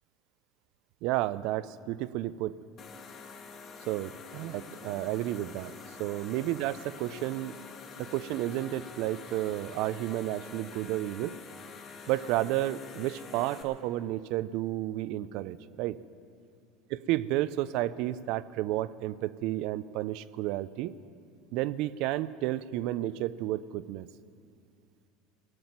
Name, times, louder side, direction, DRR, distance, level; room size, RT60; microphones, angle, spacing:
voice 1, 1.0-2.6 3.9-5.7 6.0-7.6 8.0-11.4 12.1-16.0 16.9-20.9 21.5-24.1, right 15 dB, 60° right, 17 dB, 0.4 m, -31 dB
sound 1, 2.8-13.6, left 5 dB, 40° left, 1.9 m, -47 dB
17.5 x 7.7 x 9.5 m, 2.4 s
supercardioid pair, 135°, 0 cm